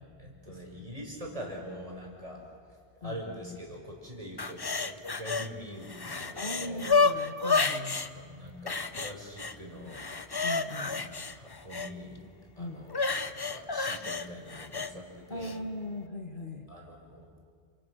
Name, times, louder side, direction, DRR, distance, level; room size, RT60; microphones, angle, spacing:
voice 1, 0.2-2.4 3.0-4.6 4.9-6.9 8.0-10.0 10.8-12.3 12.6-15.6 16.7-17.2, equal, 30° right, -1 dB, 5.7 m, -43 dB
sound 1, 4.4-5.5 5.8-8.1 8.7-9.5 9.9-11.9 12.9-14.9 15.4-15.5, left 4 dB, 25° left, 0.6 m, -30 dB
voice 2, 6.4-8.0 10.4-11.0 12.6-12.8 15.3-16.7, left 2 dB, 45° left, 4 dB, 1.8 m, -39 dB
29.5 x 27.5 x 6.4 m, 2.1 s
omnidirectional pair, 1.2 m